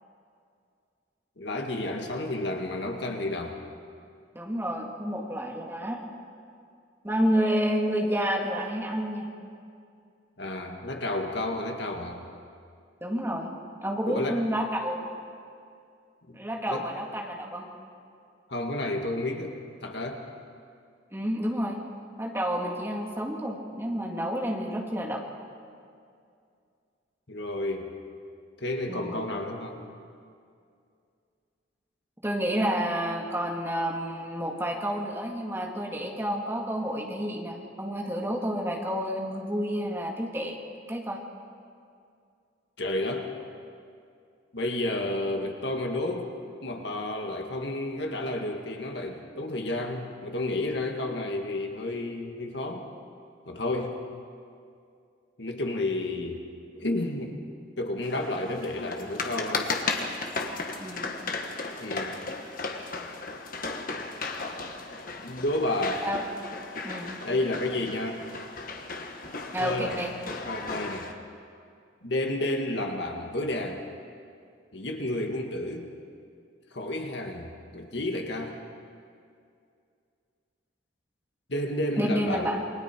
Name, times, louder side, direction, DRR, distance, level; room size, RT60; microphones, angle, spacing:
voice 1, 1.4-3.6 10.4-12.2 14.1-14.4 16.3-16.4 16.7-16.9 18.5-20.2 27.3-27.9 28.6-29.8 42.8-43.3 44.5-46.3 46.6-52.9 53.5-54.0 55.4-56.4 56.7-57.4 57.8-59.7 61.8-62.2 65.2-66.1 67.2-68.2 69.6-70.0 70.4-71.1 72.0-73.8 74.7-75.9 76.7-78.6 81.5-82.6, left 1 dB, 60° left, 2 dB, 1.9 m, -31 dB
voice 2, 4.3-6.0 7.0-9.3 13.0-13.5 13.8-15.1 16.3-17.7 21.1-21.8 22.2-25.2 28.9-29.2 32.2-40.6 40.9-41.2 60.8-61.1 66.0-66.2 66.8-67.1 69.5-70.1 82.0-82.6, equal, 10° right, 0 dB, 2.0 m, -29 dB
sound 1, 58.0-71.1, left 3 dB, 45° left, 1.4 m, -35 dB
28.5 x 21.0 x 4.5 m, 2.4 s
head